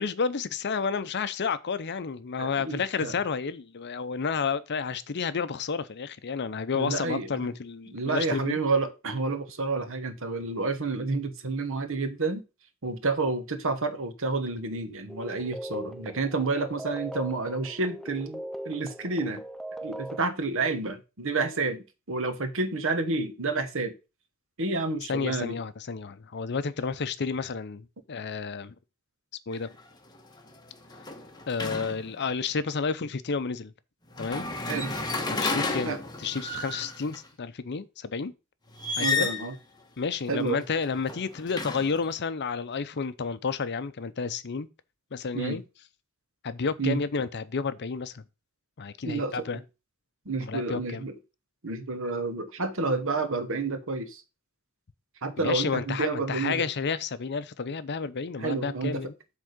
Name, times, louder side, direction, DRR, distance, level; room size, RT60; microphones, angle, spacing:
voice 1, 0.0-8.6 25.1-28.7 29.5-29.7 31.5-33.7 34.2-34.5 35.4-38.3 39.0-39.3 40.0-44.7 45.1-45.6 46.4-48.2 48.8-49.6 50.4-51.0 55.4-59.1, left 5 dB, 55° left, 0.6 m, -31 dB
voice 2, 2.4-3.2 6.7-7.5 7.9-12.4 12.8-19.4 19.8-23.9 24.6-25.6 34.7-34.9 35.9-36.0 39.0-39.5 40.3-40.6 45.3-45.6 46.8-47.0 49.0-49.4 50.2-51.1 51.6-54.2 55.2-56.7 58.4-59.0, right 3 dB, 65° right, 1.2 m, -29 dB
sound 1, 15.1-20.2, right 1 dB, ahead, 0.3 m, -40 dB
sound 2, 29.5-29.8 30.2-32.3 34.1-37.2 38.7-39.6 40.8-42.1, left 3 dB, 20° left, 1.3 m, -32 dB
8.2 x 3.7 x 6.5 m
head